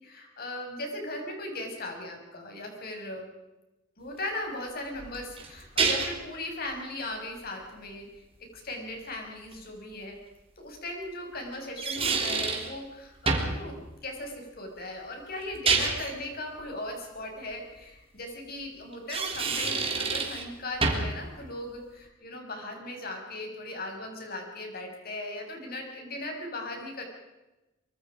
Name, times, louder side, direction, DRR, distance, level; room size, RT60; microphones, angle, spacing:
voice 1, 0.0-3.3 4.0-8.1 8.5-10.2 10.6-27.0, left 1 dB, 55° left, 2 dB, 6.4 m, -38 dB
sound 1, 5.0-6.3 9.5-9.6 11.5-12.7 13.3-13.6 15.4-16.2 18.9-20.5 20.8-21.2, right 4 dB, 30° right, 3.4 m, -28 dB
24.5 x 24.5 x 5.1 m, 1.0 s
head